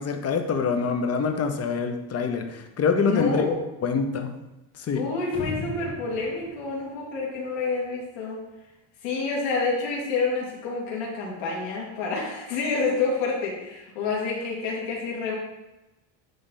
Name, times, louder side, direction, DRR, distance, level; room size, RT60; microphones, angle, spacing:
voice 1, 0.0-3.6 3.8-4.3 4.8-5.0, left 5 dB, 35° left, 6 dB, 0.8 m, -25 dB
voice 2, 3.0-3.6 4.9-8.4 9.0-15.3, left 4 dB, 80° left, -3 dB, 2.5 m, -28 dB
sound 1, 5.3-7.9, left 2 dB, 10° left, 1.6 m, -38 dB
10.0 x 3.4 x 4.0 m, 0.99 s
cardioid pair, 130°, 45 cm